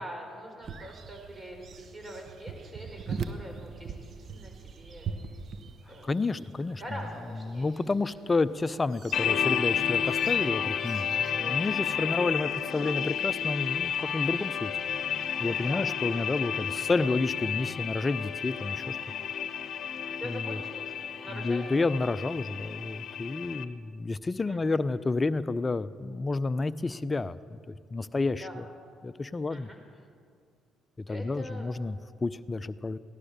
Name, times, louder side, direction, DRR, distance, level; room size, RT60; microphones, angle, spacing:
voice 1, 0.0-3.9 4.3-5.2 5.9-6.1 6.8-7.7 9.3-9.4 11.2-11.6 15.7-15.9 16.6-16.9 20.2-20.8 21.2-21.7 24.5-24.8 28.4-28.6 29.5-29.8 31.1-31.7, equal, 25° right, 2 dB, 4.9 m, -43 dB
sound 1, 0.6-12.0, right 5 dB, 55° right, 0.8 m, -43 dB
voice 2, 6.0-6.8 7.4-14.7 15.4-19.0 20.2-20.6 21.3-27.4 27.7-28.6 29.0-29.7 31.0-33.0, left 3 dB, 30° left, 15 dB, 0.6 m, -30 dB
sound 2, 9.1-23.6, left 8 dB, 60° left, 0.9 m, -31 dB
17.0 x 12.0 x 6.6 m, 2.2 s
hypercardioid pair, 50°, 0 cm